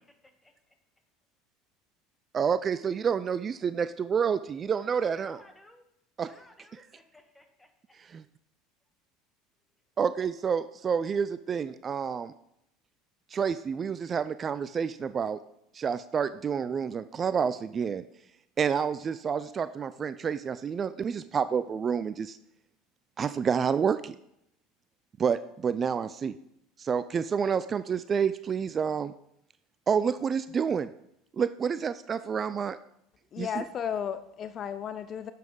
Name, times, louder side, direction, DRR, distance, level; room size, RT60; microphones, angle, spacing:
voice 1, 0.1-0.8 4.8-5.9 6.2-8.0, left 1 dB, 10° left, 6 dB, 1.4 m, -57 dB
voice 2, 2.3-5.4 6.2-6.3 8.0-8.2 10.0-12.3 13.3-15.4 15.7-18.0 18.6-22.4 23.2-24.2 25.2-26.4 26.8-29.1 29.9-30.9 31.3-32.8 33.4-33.6, right 6 dB, 35° right, 14 dB, 0.3 m, -29 dB
voice 3, 33.3-35.3, left 8 dB, 40° left, 12 dB, 0.5 m, -34 dB
9.4 x 7.2 x 3.8 m, 0.78 s
hypercardioid pair, 85°, 0 cm